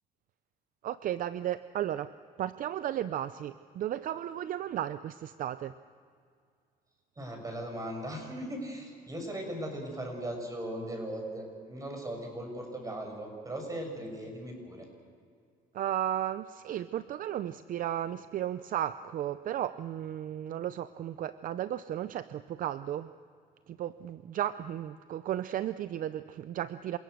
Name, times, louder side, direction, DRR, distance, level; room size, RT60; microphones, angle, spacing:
voice 1, 0.8-2.1 2.4-5.7 15.7-23.1 23.7-27.0, right 11 dB, 55° right, 13 dB, 0.6 m, -34 dB
voice 2, 7.2-14.9, right 1 dB, 20° right, 3 dB, 6.4 m, -38 dB
28.0 x 17.5 x 6.5 m, 2.2 s
cardioid pair, 110°, 17 cm